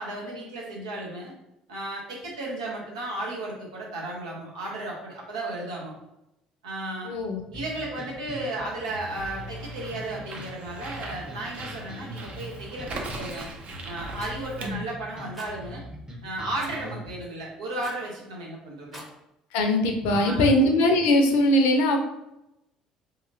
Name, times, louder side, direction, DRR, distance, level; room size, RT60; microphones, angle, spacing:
voice 1, 0.0-1.3 1.7-5.9 6.6-7.1 7.5-13.5 13.8-15.8 16.2-19.0 20.1-20.5, right 1 dB, 85° right, -3 dB, 0.8 m, -34 dB
voice 2, 7.0-7.4 14.6-14.8 19.5-22.0, left 1 dB, 70° left, 4 dB, 0.5 m, -21 dB
sound 1, 7.5-17.1, equal, 25° right, 1.0 m, -41 dB
Bird, 9.2-14.7, right 2 dB, 45° right, 0.6 m, -40 dB
Rattle, 14.2-14.4 15.3-15.5 16.6-16.8 17.8-18.1 18.8-19.1, equal, 5° right, 0.8 m, -43 dB
2.9 x 2.6 x 2.6 m, 0.87 s
hypercardioid pair, 60°, 3 cm